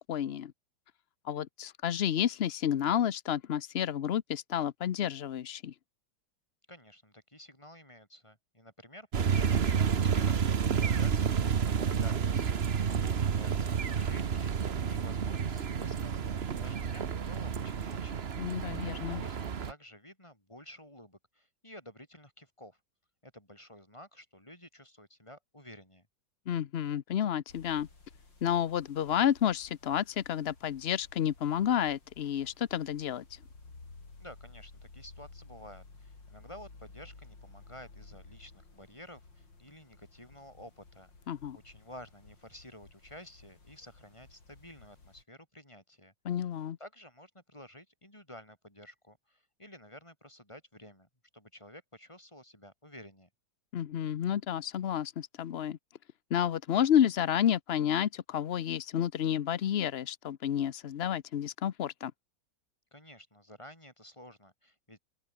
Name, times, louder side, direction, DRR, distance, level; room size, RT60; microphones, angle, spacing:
voice 1, 0.1-0.5 1.2-5.7 18.4-19.2 26.5-27.9 28.4-33.4 41.3-41.6 46.2-46.8 53.7-55.8 56.3-62.1, left 10 dB, 65° left, 0.6 m, -30 dB
voice 2, 6.7-12.6 13.0-18.6 18.8-22.8 23.2-26.1 34.2-46.1 46.8-53.3 62.9-65.0, left 1 dB, 15° left, 7.2 m, -52 dB
sound 1, 9.1-19.7, right 7 dB, 40° right, 1.1 m, -30 dB
sound 2, 27.5-45.2, left 3 dB, 85° left, 5.3 m, -55 dB
open air
omnidirectional pair, 2.0 m